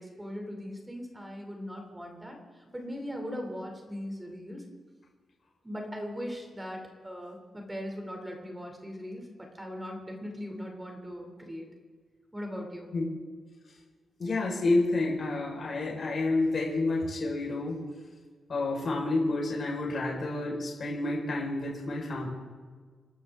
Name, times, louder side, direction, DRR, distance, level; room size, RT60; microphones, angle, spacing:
voice 1, 0.0-4.6 5.6-9.3 9.6-11.7 12.3-12.9, equal, 10° right, 2 dB, 2.8 m, -39 dB
voice 2, 14.2-17.8 18.5-22.3, left 2 dB, 40° left, -3 dB, 4.5 m, -29 dB
28.0 x 12.5 x 3.6 m, 1.5 s
wide cardioid pair, 170°, 0 cm